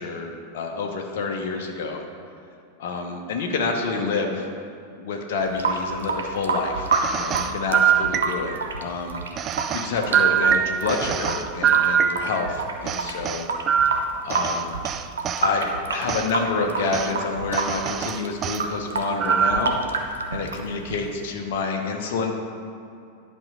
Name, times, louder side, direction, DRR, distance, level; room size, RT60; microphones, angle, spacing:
voice 1, 0.0-2.0 2.8-4.5 5.0-13.5 14.2-14.7 15.4-19.8 20.3-22.4, left 4 dB, 55° left, 2 dB, 1.0 m, -28 dB
Water tap faucet / Sink (filling or washing) / Drip, 5.4-21.3, right 4 dB, 70° right, 0.8 m, -29 dB
sound 1, 6.9-8.7 9.4-12.5 12.9-15.5 16.1-16.3 16.9-17.1 17.5-18.6 19.2-19.8, right 8 dB, 30° right, 0.3 m, -23 dB
10.5 x 5.4 x 5.0 m, 2.6 s
figure-of-eight pair, 90°, 0 cm